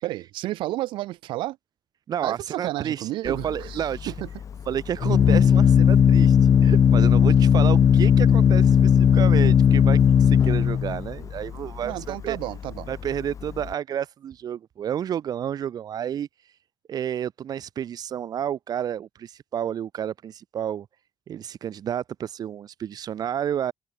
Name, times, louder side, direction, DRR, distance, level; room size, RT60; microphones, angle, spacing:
voice 1, 0.0-1.6 2.2-4.3 11.8-12.9, right 16 dB, 90° right, 7.0 m, -31 dB
voice 2, 2.1-4.1 4.7-12.4 12.9-16.5 16.9-20.9 21.3-23.7, right 9 dB, 55° right, 3.7 m, -30 dB
Organ, 3.3-13.7, left 8 dB, 40° left, 0.9 m, -18 dB
cardioid pair, 125°, 8 cm